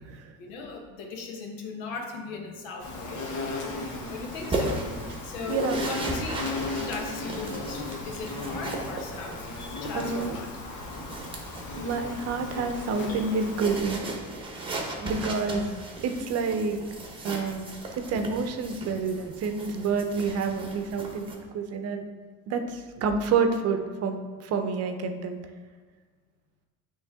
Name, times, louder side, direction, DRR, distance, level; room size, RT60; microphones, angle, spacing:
voice 1, 0.4-3.2 4.1-4.9 5.2-9.5 9.7-10.5, left 4 dB, 90° left, 1 dB, 1.2 m, -38 dB
Insect, 2.8-13.8, left 2 dB, 60° left, 1.2 m, -36 dB
sound 1, 3.7-21.4, right 2 dB, 15° right, 1.1 m, -37 dB
voice 2, 9.9-10.4 11.8-14.1 14.9-15.7 16.0-16.8 17.2-17.7 18.1-22.0 22.5-25.4, right 4 dB, 50° right, 7 dB, 0.7 m, -28 dB
8.3 x 3.2 x 3.6 m, 1.5 s
cardioid pair, 125°, 32 cm